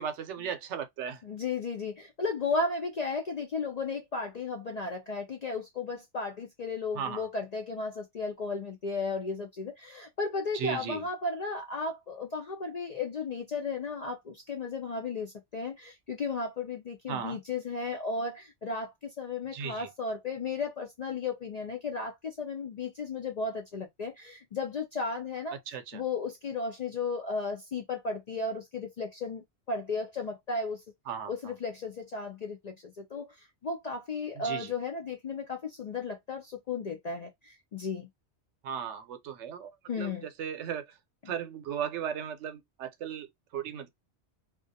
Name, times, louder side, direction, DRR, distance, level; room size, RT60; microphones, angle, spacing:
voice 1, 0.0-1.2 6.9-7.3 10.5-11.1 17.1-17.4 19.5-19.9 25.7-26.0 31.1-31.5 34.4-34.7 38.6-39.7 40.0-40.1 40.4-40.9 41.3-43.9, right 8 dB, 80° right, 0.9 m, -36 dB
voice 2, 1.2-25.6 25.9-30.8 31.3-38.1 39.9-40.3, left 4 dB, 60° left, 0.4 m, -34 dB
2.3 x 2.2 x 2.6 m
omnidirectional pair, 1.2 m